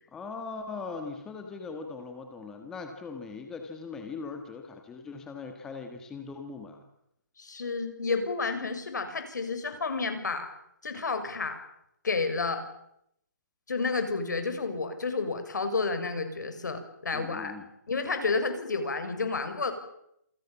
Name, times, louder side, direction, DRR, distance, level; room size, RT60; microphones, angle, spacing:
voice 1, 0.1-6.8 17.1-17.7, left 4 dB, 5° left, 5 dB, 1.6 m, -40 dB
voice 2, 7.4-10.5 10.8-11.6 12.0-12.6 13.7-17.5 17.9-19.7, left 4 dB, 70° left, 8 dB, 6.5 m, -30 dB
27.5 x 26.0 x 7.3 m, 0.78 s
hypercardioid pair, 170°, 10 cm